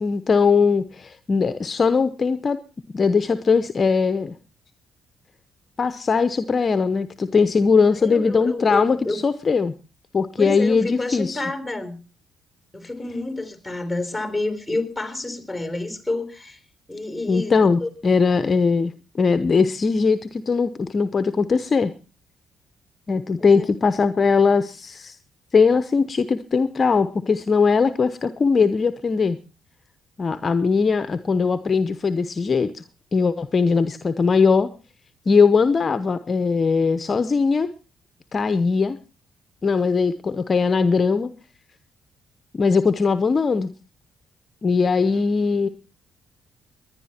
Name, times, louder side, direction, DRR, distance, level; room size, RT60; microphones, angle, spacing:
voice 1, 0.0-2.6 2.9-4.3 5.8-9.7 10.1-11.4 17.3-18.9 19.2-21.9 23.1-25.2 25.5-29.4 30.2-32.8 33.1-34.7 35.3-37.7 38.3-39.0 39.6-41.3 42.6-43.7 44.6-45.7, left 5 dB, 35° left, 11 dB, 0.9 m, -20 dB
voice 2, 8.0-9.2 10.4-12.0 12.7-16.6 16.9-17.5 17.8-17.9 23.4-23.7, left 2 dB, ahead, 9 dB, 3.7 m, -29 dB
20.0 x 10.5 x 4.3 m, 0.34 s
cardioid pair, 90°, 0 cm